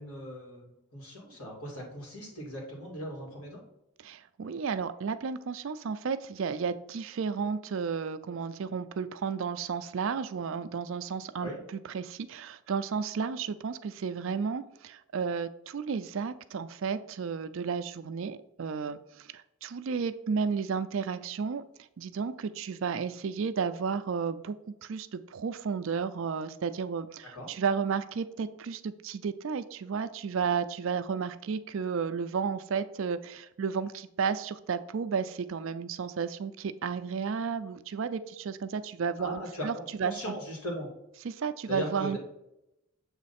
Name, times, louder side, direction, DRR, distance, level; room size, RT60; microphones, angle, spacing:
voice 1, 0.0-3.6 11.4-11.6 27.3-27.5 39.2-40.9 41.7-42.2, equal, 80° left, -1 dB, 2.3 m, -39 dB
voice 2, 4.0-11.5 11.9-21.6 22.0-24.6 24.8-39.7 40.0-40.1 41.2-42.2, right 6 dB, 60° right, 12 dB, 0.4 m, -32 dB
7.2 x 3.1 x 4.2 m, 0.86 s
head